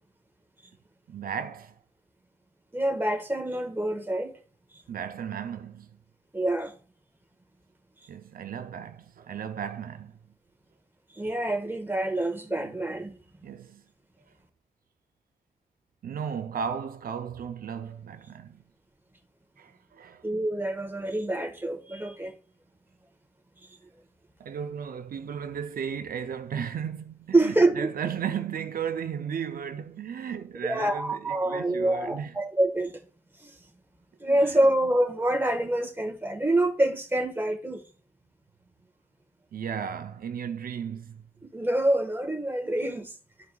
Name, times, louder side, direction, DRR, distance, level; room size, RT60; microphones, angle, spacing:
voice 1, 1.1-1.8 4.9-6.0 8.1-10.2 12.5-12.7 13.4-13.8 16.0-18.6 19.6-20.3 24.4-32.4 34.2-34.6 39.5-41.3, right 7 dB, 85° right, 0.5 m, -35 dB
voice 2, 2.7-4.3 6.3-6.7 11.1-13.1 20.2-22.3 27.3-27.9 30.6-33.0 33.4-33.5 34.2-37.8 41.5-43.1, right 1 dB, 15° right, 1.3 m, -26 dB
12.5 x 4.6 x 2.3 m
cardioid pair, 75°, 15 cm